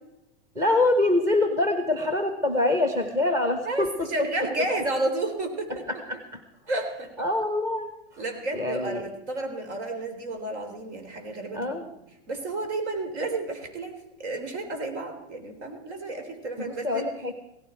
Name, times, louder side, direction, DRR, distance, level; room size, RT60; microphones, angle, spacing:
voice 1, 0.5-4.1 5.9-6.4 7.2-7.9 8.1-8.2 8.5-9.1 11.5-11.9 16.6-17.3, left 2 dB, 10° right, 6 dB, 0.8 m, -25 dB
voice 2, 3.6-5.7 6.7-7.3 8.2-11.8 12.3-13.9 14.2-17.0, right 2 dB, 70° right, 5 dB, 3.9 m, -31 dB
17.0 x 14.5 x 4.5 m, 0.89 s
supercardioid pair, 165°, 36 cm